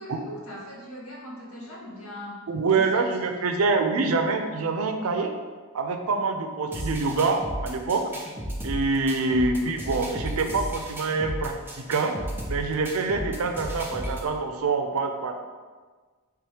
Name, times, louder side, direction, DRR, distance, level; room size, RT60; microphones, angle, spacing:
voice 1, 0.0-3.5 9.4-9.5, left 1 dB, 85° left, -4 dB, 1.1 m, -41 dB
voice 2, 2.5-5.3 5.7-8.1 8.6-12.2 12.5-15.4, right 3 dB, 80° right, 6 dB, 0.5 m, -25 dB
sound 1, 6.7-14.3, equal, 10° right, 0.6 m, -34 dB
3.6 x 2.9 x 4.8 m, 1.4 s
head